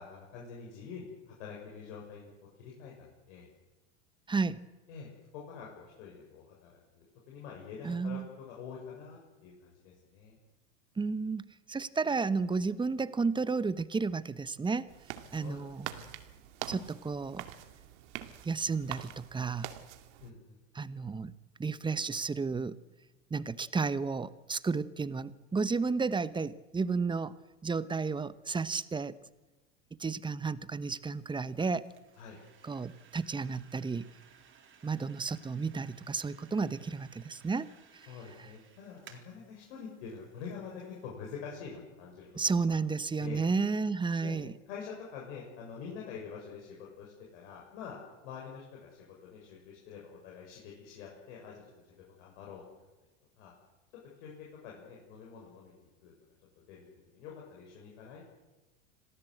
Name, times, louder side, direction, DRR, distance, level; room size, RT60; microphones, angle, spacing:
voice 1, 0.0-2.3 2.6-3.5 4.9-10.4 15.4-16.0 20.2-20.6 32.2-32.4 38.1-42.3 43.2-43.4 44.2-44.4 44.7-48.0 48.2-52.6 53.4-53.5 54.2-56.1 56.7-56.9 57.1-58.2, left 6 dB, 65° left, -2 dB, 7.1 m, -46 dB
voice 2, 4.3-4.6 7.8-8.3 11.0-11.4 11.7-14.9 15.3-15.9 16.7-17.4 18.4-19.7 20.7-21.3 21.6-22.8 23.3-27.3 27.6-29.2 30.0-31.9 32.6-34.1 34.8-37.7 42.4-44.5, right 4 dB, 10° right, 16 dB, 1.0 m, -32 dB
sound 1, 14.9-20.3, right 13 dB, 65° right, 2.3 m, -45 dB
sound 2, 31.0-41.1, right 7 dB, 30° right, 4.1 m, -61 dB
27.0 x 18.5 x 8.0 m, 1.1 s
hypercardioid pair, 100°, 39 cm